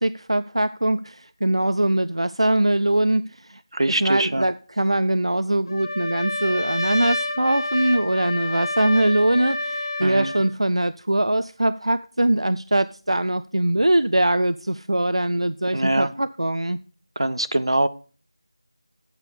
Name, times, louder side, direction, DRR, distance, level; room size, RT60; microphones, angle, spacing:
voice 1, 0.0-3.6 3.9-16.8, right 1 dB, 85° right, 0.5 m, -22 dB
voice 2, 3.7-4.4 10.0-10.3 15.7-16.1 17.2-17.9, right 1 dB, 70° right, 0.8 m, -23 dB
Trumpet, 5.7-10.5, left 1 dB, 50° left, 1.4 m, -28 dB
9.6 x 8.2 x 5.1 m
figure-of-eight pair, 170°, 3 cm